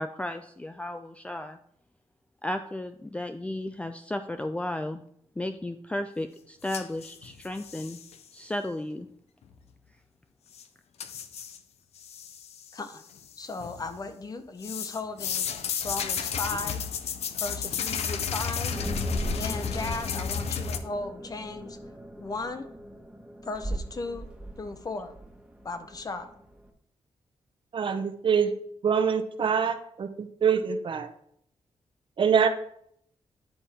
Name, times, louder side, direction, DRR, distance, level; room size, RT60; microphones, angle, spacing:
voice 1, 0.0-1.6 2.4-5.0 5.4-8.0 8.3-9.1, left 1 dB, 10° left, 8 dB, 0.4 m, -34 dB
sound 1, 6.7-8.2 10.5-10.6 11.0-11.6 12.0-12.8 13.1-13.9 14.6-20.8, left 7 dB, 85° left, 0.6 m, -32 dB
voice 2, 12.7-13.0 13.4-15.4 15.8-16.9 17.4-18.7 19.1-21.8 22.2-22.7 23.4-24.3 24.6-25.1 25.6-26.3, left 3 dB, 35° left, 9 dB, 0.8 m, -36 dB
sound 2, 18.7-26.7, right 1 dB, 10° right, 1.1 m, -39 dB
voice 3, 27.7-28.5 28.8-31.1 32.2-32.5, right 7 dB, 55° right, 9 dB, 0.7 m, -25 dB
10.0 x 3.6 x 4.2 m, 0.68 s
cardioid pair, 100°, 10 cm